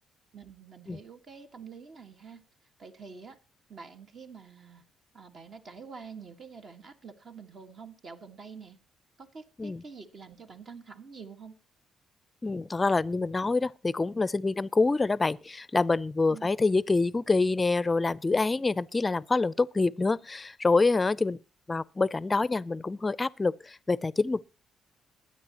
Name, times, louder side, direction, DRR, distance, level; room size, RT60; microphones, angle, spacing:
voice 1, 0.3-2.4 2.8-3.4 3.7-4.8 5.1-8.8 9.2-11.5 16.3-16.5, right 5 dB, 50° right, 1.6 m, -47 dB
voice 2, 12.4-21.4 21.7-24.4, left 3 dB, 25° left, 0.5 m, -26 dB
21.5 x 9.7 x 2.9 m
cardioid pair, 90°, 0 cm